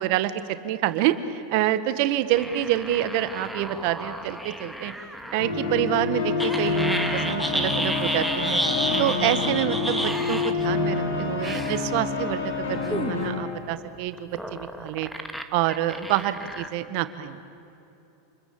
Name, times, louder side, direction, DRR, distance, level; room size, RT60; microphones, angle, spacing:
voice 1, 0.0-4.9 5.3-8.6 9.0-15.1 15.5-17.4, right 13 dB, 60° right, 12 dB, 1.6 m, -27 dB
sound 1, 2.3-5.5 6.4-10.6 11.4-11.8 12.8-13.2 14.1-16.7, equal, ahead, 2.2 m, -31 dB
sound 2, 5.4-13.4, left 4 dB, 80° left, 7.5 m, -27 dB
29.0 x 21.5 x 8.9 m, 2.9 s
hypercardioid pair, 100°, 0 cm